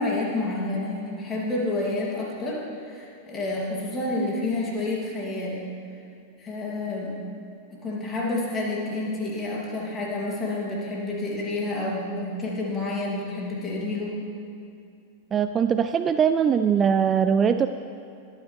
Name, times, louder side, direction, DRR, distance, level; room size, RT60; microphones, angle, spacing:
voice 1, 0.0-5.7 6.4-7.1 7.7-14.2, left 2 dB, 20° left, -3 dB, 2.9 m, -29 dB
voice 2, 15.3-17.7, right 7 dB, 25° right, 10 dB, 0.3 m, -21 dB
20.5 x 9.0 x 3.5 m, 2.5 s
figure-of-eight pair, 90°, 0 cm